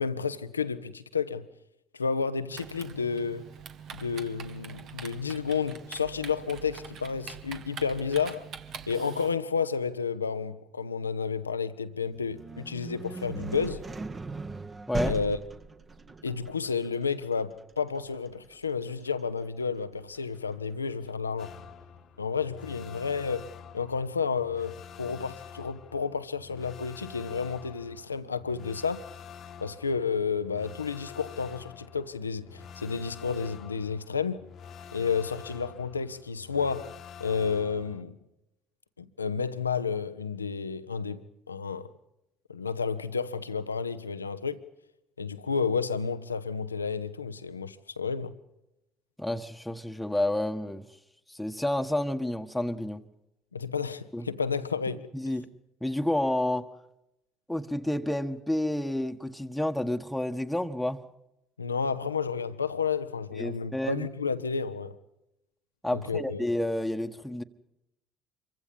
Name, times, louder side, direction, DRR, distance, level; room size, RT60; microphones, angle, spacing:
voice 1, 0.0-1.5 1.9-3.4 3.9-8.5 8.9-13.9 15.0-15.4 16.2-21.5 22.2-29.1 29.6-34.4 34.9-38.2 39.0-41.9 42.5-44.6 45.2-48.3 53.5-55.1 61.6-64.9 65.9-66.4, left 5 dB, 85° left, 0.9 m, -31 dB
Typing, 2.5-9.3, right 7 dB, 50° right, 1.8 m, -44 dB
sound 1, 12.1-21.8, right 3 dB, 30° right, 1.9 m, -40 dB
sound 2, 21.4-38.0, left 7 dB, 50° left, 1.4 m, -47 dB
voice 2, 49.2-50.9 51.3-53.0 54.1-54.3 55.1-55.5 55.8-56.7 57.5-61.0 63.4-64.1 65.8-67.4, left 1 dB, 5° left, 1.6 m, -30 dB
27.0 x 24.0 x 5.5 m
figure-of-eight pair, 55°, 0 cm